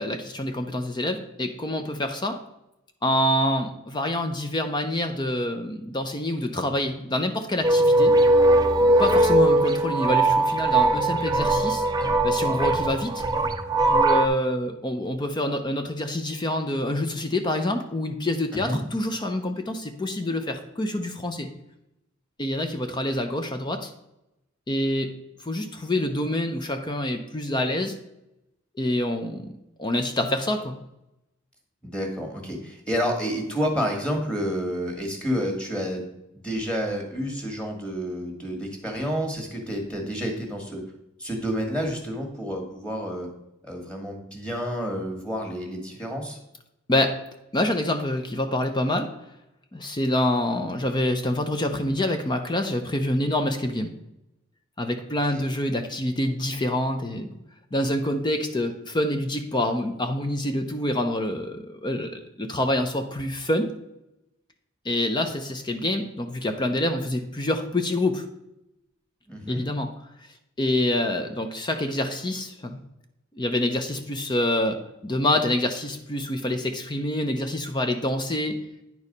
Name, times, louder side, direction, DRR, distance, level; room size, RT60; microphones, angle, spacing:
voice 1, 0.0-2.4 3.0-8.1 9.0-11.9 12.2-13.2 13.9-21.5 22.4-23.9 24.7-25.1 25.4-27.9 28.8-29.5 29.8-30.8 46.9-47.1 47.5-49.1 49.7-53.9 54.8-57.3 57.7-63.7 64.8-68.3 69.5-69.9 70.6-72.8 73.3-78.6, left 1 dB, 20° left, 6 dB, 0.6 m, -26 dB
sound 1, 7.6-14.3, right 2 dB, 20° right, 0.6 m, -20 dB
voice 2, 31.8-40.8 41.2-43.3 43.6-46.4 55.3-55.5 69.3-69.6, equal, 5° left, 1 dB, 1.8 m, -29 dB
9.7 x 4.7 x 5.3 m, 0.86 s
head